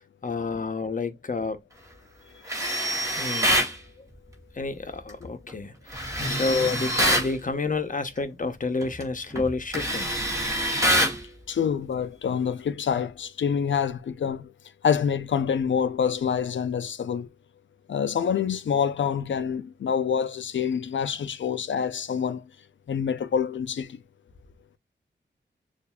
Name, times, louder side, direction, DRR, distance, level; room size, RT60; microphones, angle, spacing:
voice 1, 0.2-1.6 3.2-3.6 4.6-10.1, left 3 dB, 45° left, 0.8 m, -29 dB
Tools, 2.5-3.7 5.9-7.3 8.8-9.0 9.4-11.2, equal, 15° right, 2.4 m, -25 dB
voice 2, 11.5-14.5 14.8-17.3 17.9-22.4 22.9-24.0, left 7 dB, 90° left, 0.6 m, -26 dB
6.8 x 2.6 x 2.3 m
wide cardioid pair, 85°, 19 cm